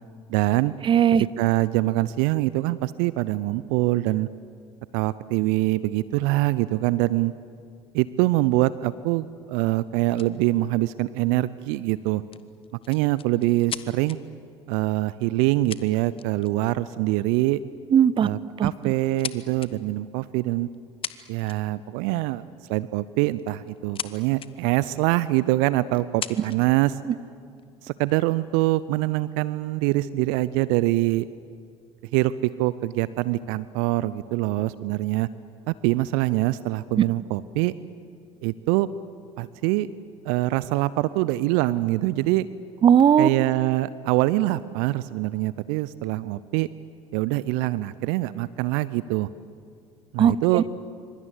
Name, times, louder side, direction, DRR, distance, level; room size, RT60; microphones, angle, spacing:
voice 1, 0.3-0.7 1.4-4.3 4.9-7.3 7.9-12.2 12.9-14.2 14.7-17.6 18.2-20.7 21.3-22.4 22.7-27.0 27.8-31.3 32.1-35.3 35.7-37.7 38.4-38.9 39.4-39.9 40.2-42.5 43.2-46.7 47.1-49.3 50.1-50.6, right 18 dB, 60° right, 18 dB, 0.6 m, -24 dB
voice 2, 0.9-1.2 17.9-18.3 18.6-18.7 37.0-37.1 42.8-43.3 50.2-50.7, right 8 dB, 35° right, 20 dB, 0.9 m, -17 dB
sound 1, 10.1-10.3 12.3-14.2 15.3-15.4 15.7-16.5 16.9-17.1 18.0-18.3 18.7-19.7 20.7-20.8 21.0-21.8 23.3-24.1 24.4-24.5 25.2-25.3 25.9-26.7 27.4-28.1, left 8 dB, 35° left, 1.3 m, -37 dB
27.0 x 25.5 x 8.2 m, 2.2 s
figure-of-eight pair, 60°, 15 cm